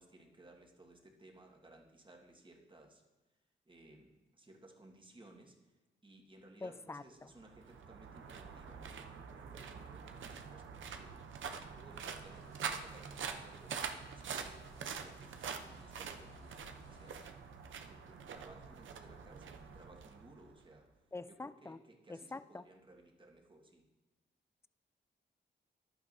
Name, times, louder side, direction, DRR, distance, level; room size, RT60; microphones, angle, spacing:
voice 1, 0.0-3.0 3.6-11.3 11.5-17.3 17.9-20.9 21.3-23.9, right 2 dB, 25° right, 1.6 m, -60 dB
voice 2, 6.6-7.0 21.1-21.8 22.1-22.6, left 3 dB, 15° left, 0.3 m, -45 dB
sound 1, 7.3-20.7, right 6 dB, 75° right, 0.7 m, -45 dB
sound 2, 11.9-17.3, left 1 dB, 30° left, 2.4 m, -64 dB
11.0 x 8.8 x 2.7 m
cardioid pair, 60°, 20 cm